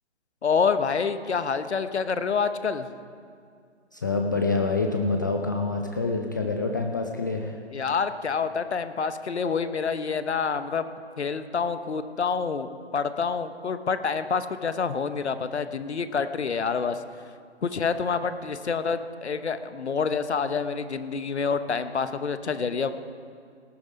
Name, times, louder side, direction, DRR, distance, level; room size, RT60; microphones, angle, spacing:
voice 1, 0.4-2.9 7.7-10.8 11.2-17.0 17.6-22.9, left 5 dB, 70° left, 11 dB, 0.9 m, -27 dB
voice 2, 3.9-7.6, left 3 dB, 20° left, 3 dB, 0.4 m, -26 dB
18.0 x 9.6 x 5.2 m, 2.3 s
figure-of-eight pair, 135°, 34 cm